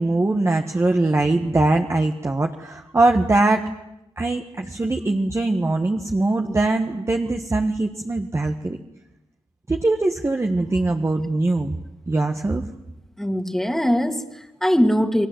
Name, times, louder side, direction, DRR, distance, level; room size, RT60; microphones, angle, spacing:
voice 1, 0.0-3.6 4.2-8.8 9.7-11.8 12.1-12.6, right 2 dB, 25° right, 4 dB, 1.5 m, -21 dB
voice 2, 13.2-15.3, equal, 5° left, 6 dB, 2.3 m, -21 dB
30.0 x 22.5 x 7.9 m, 0.87 s
wide cardioid pair, 100°, 10 cm